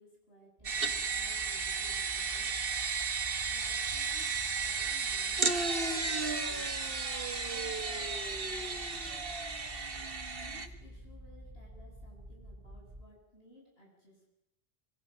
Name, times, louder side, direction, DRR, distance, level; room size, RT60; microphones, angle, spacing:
voice 1, 0.0-2.8 3.5-7.0 7.3-9.4 10.4-14.3, left 1 dB, 75° left, -2 dB, 7.5 m, -59 dB
sound 1, 0.6-13.0, equal, 30° right, 5.6 m, -51 dB
sound 2, 0.6-10.7, right 4 dB, 65° right, 1.8 m, -33 dB
25.0 x 24.0 x 6.4 m, 0.86 s
omnidirectional pair, 1.1 m